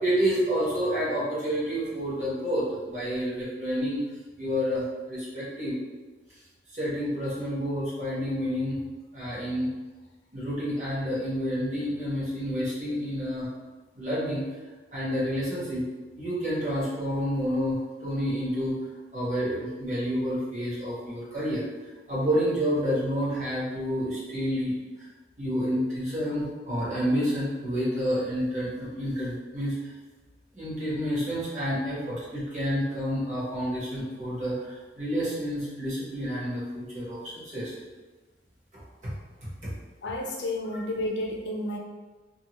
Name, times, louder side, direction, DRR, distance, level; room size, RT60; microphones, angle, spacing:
voice 1, 0.0-4.0 4.4-5.8 6.7-8.8 9.1-9.7 10.3-13.5 13.9-14.4 14.9-15.8 16.2-18.8 19.1-21.7 22.1-24.8 25.4-29.8 30.5-37.8 39.0-39.1 39.6-39.7 40.7-40.8, equal, 40° right, -9 dB, 1.2 m, -29 dB
voice 2, 40.0-41.8, left 1 dB, 80° left, 1 dB, 0.5 m, -31 dB
2.7 x 2.4 x 2.9 m, 1.3 s
head